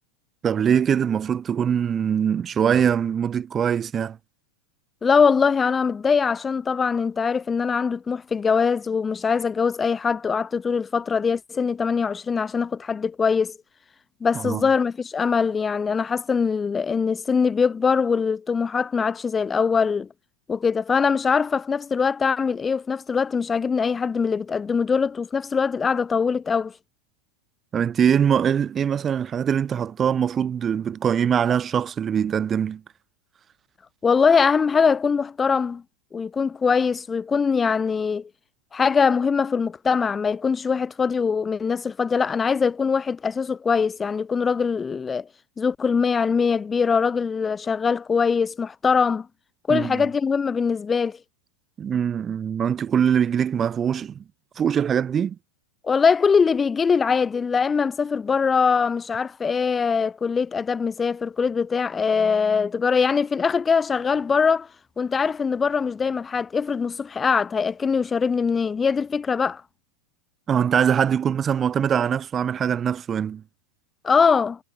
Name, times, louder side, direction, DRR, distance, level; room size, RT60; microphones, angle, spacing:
voice 1, 0.4-4.2 14.3-14.7 27.7-32.8 49.7-50.1 51.8-54.2 54.6-55.4 70.5-73.4, right 8 dB, 25° right, 5.2 m, -22 dB
voice 2, 5.0-13.5 14.2-20.1 20.5-26.7 34.0-35.8 36.1-38.3 38.7-45.3 45.6-49.3 49.7-51.2 55.8-64.7 65.0-69.6 74.0-74.6, left 5 dB, 15° left, 4.5 m, -22 dB
figure-of-eight pair, 90°, 0 cm